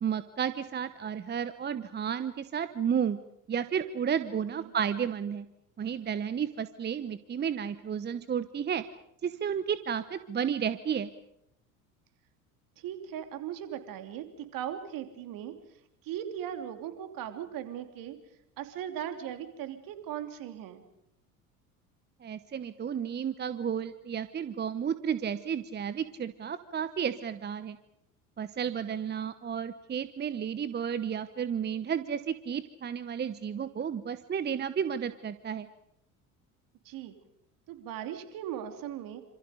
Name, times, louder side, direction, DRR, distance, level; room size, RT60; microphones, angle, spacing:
voice 1, 0.0-3.2 3.5-5.4 5.8-8.8 9.2-11.1 22.2-27.8 28.4-35.7, right 8 dB, 25° right, 14 dB, 1.0 m, -32 dB
voice 2, 12.8-14.2 14.5-15.5 16.0-18.2 18.6-20.8 36.8-37.1 37.7-39.2, right 10 dB, 50° right, 7 dB, 3.2 m, -38 dB
27.5 x 27.0 x 5.2 m, 0.79 s
figure-of-eight pair, 65°, 43 cm